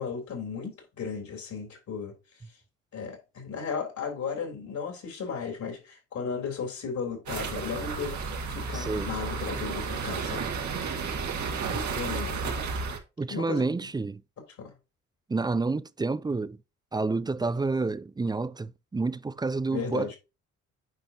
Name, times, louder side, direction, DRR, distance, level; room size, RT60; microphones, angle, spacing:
voice 1, 0.0-2.1 2.9-10.4 11.9-12.4 13.3-13.7 14.6-14.7 19.7-20.1, left 6 dB, 65° left, 3.6 m, -35 dB
sound 1, 7.3-13.0, right 5 dB, 65° right, 2.0 m, -32 dB
voice 2, 8.7-9.1 11.7-11.8 13.2-14.2 15.3-16.6 16.9-20.1, right 3 dB, 15° right, 0.4 m, -29 dB
9.3 x 5.1 x 2.9 m
supercardioid pair, 65°, 31 cm